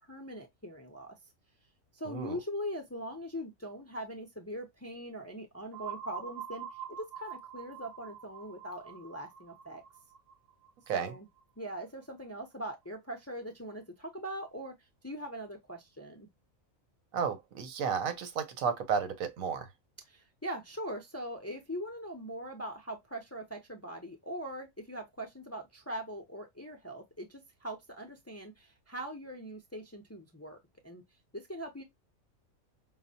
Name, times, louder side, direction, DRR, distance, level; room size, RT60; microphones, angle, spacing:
voice 1, 0.1-1.2 1.9-9.8 10.9-11.3 11.6-14.7 15.0-16.3 20.0-30.6 30.8-31.0 31.3-31.8, equal, 25° left, 0.3 m, -41 dB
voice 2, 2.1-2.4 10.9-11.1 17.1-19.7, right 6 dB, 90° right, 1.2 m, -32 dB
sound 1, 5.7-11.4, right 8 dB, 55° right, 0.8 m, -45 dB
5.5 x 2.1 x 2.6 m
omnidirectional pair, 1.4 m